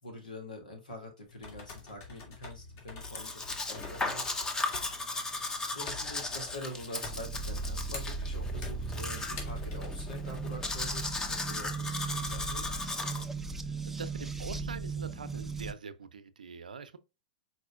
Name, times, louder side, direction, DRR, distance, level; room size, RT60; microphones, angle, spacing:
voice 1, 0.0-4.4 5.7-12.8, left 1 dB, 90° left, 2.3 m, -45 dB
sound 1, 1.2-9.9, left 4 dB, 45° left, 2.4 m, -47 dB
Domestic sounds home sounds, 3.0-13.2, left 2 dB, 15° left, 0.8 m, -37 dB
sound 2, 7.0-15.7, right 3 dB, 5° right, 0.5 m, -37 dB
voice 2, 13.6-17.0, right 5 dB, 90° right, 0.6 m, -44 dB
5.0 x 4.3 x 2.4 m
hypercardioid pair, 115°, 4 cm